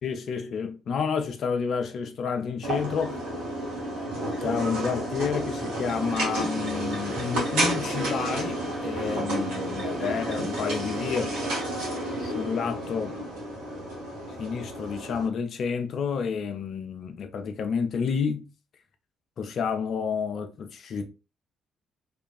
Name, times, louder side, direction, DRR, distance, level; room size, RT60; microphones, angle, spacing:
voice 1, 0.0-3.2 4.4-11.4 12.2-13.2 14.4-18.5 19.4-21.0, left 6 dB, 55° left, 0.5 m, -30 dB
sound 1, 2.6-15.3, right 1 dB, 65° right, 1.1 m, -31 dB
3.0 x 2.3 x 2.4 m
figure-of-eight pair, 45°, 0 cm